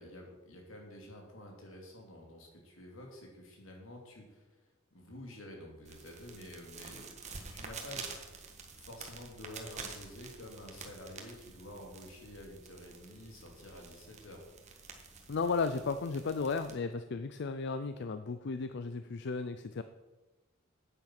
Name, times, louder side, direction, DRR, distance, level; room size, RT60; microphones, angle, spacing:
voice 1, 0.0-4.6 4.9-8.2 8.8-14.4, left 1 dB, 80° left, 1 dB, 2.8 m, -49 dB
sound 1, 5.8-16.7, right 4 dB, 35° right, 1.4 m, -49 dB
voice 2, 15.3-19.8, left 4 dB, 60° left, 10 dB, 0.5 m, -34 dB
9.0 x 8.6 x 6.0 m, 1.1 s
head